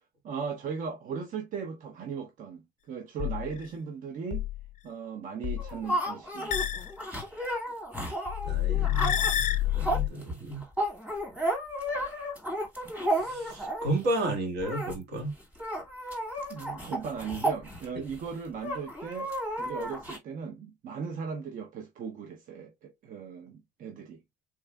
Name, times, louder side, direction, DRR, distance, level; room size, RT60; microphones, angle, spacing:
voice 1, 0.2-4.5 4.8-6.6 16.5-19.3 19.6-24.2, right 6 dB, 50° right, 0.6 m, -37 dB
sound 1, 3.2-3.7 4.3-4.7 5.4-5.8 6.5-6.9 8.3-10.1, left 12 dB, 45° left, 0.4 m, -28 dB
sound 2, 5.6-14.0 14.6-14.9 15.2-15.3 15.5-18.2 18.6-20.2, right 1 dB, 10° right, 1.8 m, -33 dB
voice 2, 8.4-10.6 13.1-15.3, right 1 dB, 70° right, 1.5 m, -33 dB
3.6 x 3.2 x 2.2 m
cardioid pair, 110°, 17 cm